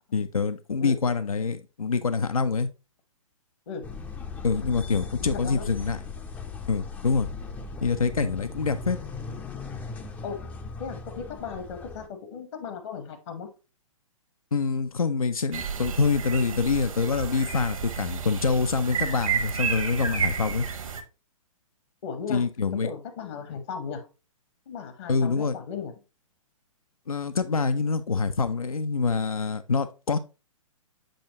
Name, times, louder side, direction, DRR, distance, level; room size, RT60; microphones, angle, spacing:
voice 1, 0.1-2.7 4.4-6.0 6.7-7.3 7.8-9.0 14.5-20.7 22.3-22.9 25.1-25.6 27.1-30.2, left 4 dB, 90° left, 0.5 m, -25 dB
sound 1, 3.8-12.1, left 4 dB, 10° left, 0.4 m, -38 dB
voice 2, 5.2-5.7 10.2-10.4 10.8-13.5 22.0-22.4 22.8-24.1 24.7-25.9, left 6 dB, 55° left, 0.9 m, -36 dB
sound 2, 15.5-21.0, right 7 dB, 70° right, 1.0 m, -31 dB
7.7 x 4.3 x 2.8 m
figure-of-eight pair, 125°, 18 cm